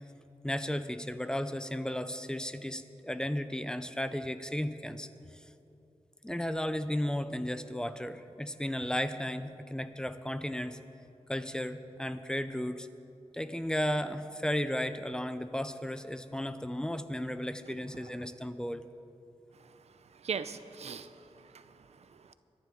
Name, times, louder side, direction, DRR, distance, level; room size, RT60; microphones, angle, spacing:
voice 1, 0.4-5.1 5.3-5.4 6.2-10.8 11.3-12.9 13.3-18.8, equal, 5° left, 11 dB, 0.6 m, -34 dB
voice 2, 20.2-22.3, right 6 dB, 90° right, 12 dB, 0.5 m, -40 dB
23.0 x 10.5 x 3.9 m, 2.8 s
wide cardioid pair, 105°, 11 cm